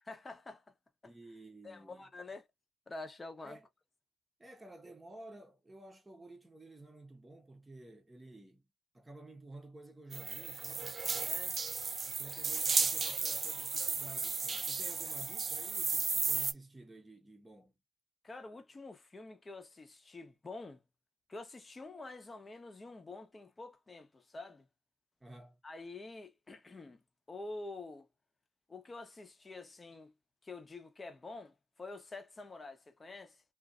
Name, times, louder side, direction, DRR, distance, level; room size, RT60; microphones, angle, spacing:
voice 1, 0.1-0.6 1.0-1.1 1.6-2.5 2.9-3.6 11.2-11.6 18.2-20.8 21.3-24.7 25.6-27.0 27.3-28.1 28.7-30.1 30.4-33.4, left 3 dB, 25° left, 0.8 m, -47 dB
voice 2, 1.0-2.1 3.4-3.7 4.4-8.6 8.9-11.0 11.7-11.8 12.1-17.7 25.2-25.6, right 2 dB, 15° right, 0.9 m, -53 dB
sound 1, 10.1-16.5, right 5 dB, 40° right, 0.3 m, -34 dB
2.6 x 2.4 x 2.3 m
cardioid pair, 90°, 0 cm